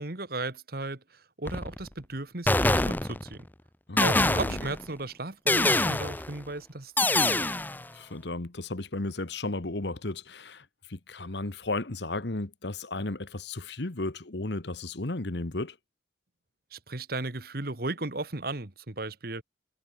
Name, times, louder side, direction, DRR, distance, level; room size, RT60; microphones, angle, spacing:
voice 1, 0.0-3.5 4.0-7.5 16.7-19.4, right 2 dB, 55° right, 1.7 m, -35 dB
sound 1, 1.5-1.9 2.5-3.4 4.0-4.8 5.5-6.3 7.0-7.8, left 2 dB, 10° left, 0.7 m, -25 dB
voice 2, 3.9-4.6 7.9-15.8, left 2 dB, 65° left, 1.4 m, -34 dB
head